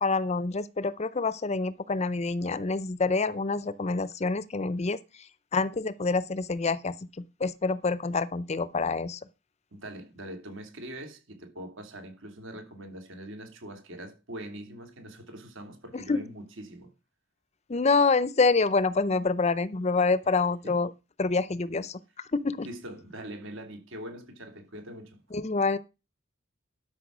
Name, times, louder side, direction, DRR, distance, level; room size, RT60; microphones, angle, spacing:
voice 1, 0.0-5.0 5.5-9.2 15.9-16.2 17.7-20.9 21.2-22.7 25.3-25.8, left 4 dB, 30° left, 0.6 m, -27 dB
voice 2, 9.7-16.9 20.6-20.8 22.6-25.2, right 1 dB, 70° right, 2.8 m, -42 dB
12.0 x 5.6 x 6.1 m
head